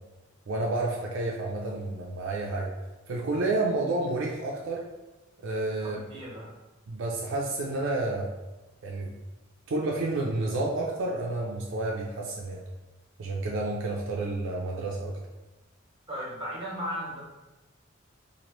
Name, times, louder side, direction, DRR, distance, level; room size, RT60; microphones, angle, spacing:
voice 1, 0.5-2.7 3.1-4.8 5.4-6.0 6.9-8.3 8.8-9.1 9.7-12.6 13.2-15.2, right 2 dB, 70° right, -2 dB, 0.4 m, -30 dB
voice 2, 5.8-6.5 16.1-17.2, equal, 25° right, -5 dB, 1.0 m, -36 dB
3.0 x 2.5 x 2.9 m, 1.1 s
head